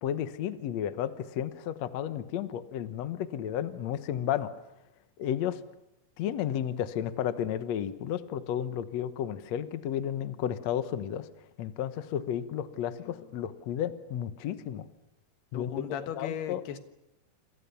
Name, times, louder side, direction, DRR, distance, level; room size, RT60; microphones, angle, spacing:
voice 1, 0.0-4.5 5.2-5.6 6.2-11.3 11.6-14.9 15.5-15.7 16.2-16.6, left 10 dB, 65° left, 11 dB, 1.8 m, -32 dB
voice 2, 15.5-16.8, left 9 dB, 80° left, 8 dB, 3.5 m, -37 dB
27.5 x 27.0 x 7.0 m, 0.90 s
omnidirectional pair, 4.6 m